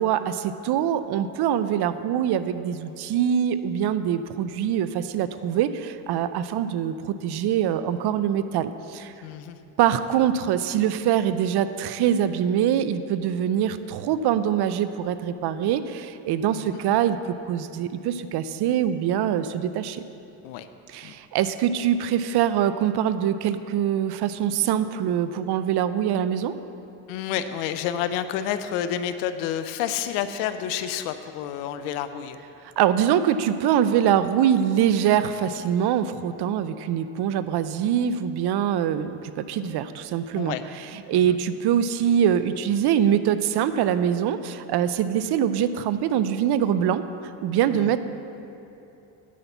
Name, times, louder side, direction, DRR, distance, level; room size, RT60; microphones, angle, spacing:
voice 1, 0.0-9.1 9.8-17.2 17.5-20.0 20.9-26.5 32.8-40.6 41.1-48.0, right 9 dB, 55° right, 12 dB, 0.6 m, -24 dB
voice 2, 9.2-9.6 16.5-16.8 20.4-20.7 21.0-21.1 27.1-32.4 39.6-39.8 40.3-40.6 41.1-41.4 47.7-47.9, left 10 dB, 85° left, 11 dB, 0.7 m, -30 dB
9.2 x 5.9 x 7.1 m, 2.8 s
supercardioid pair, 75°, 47 cm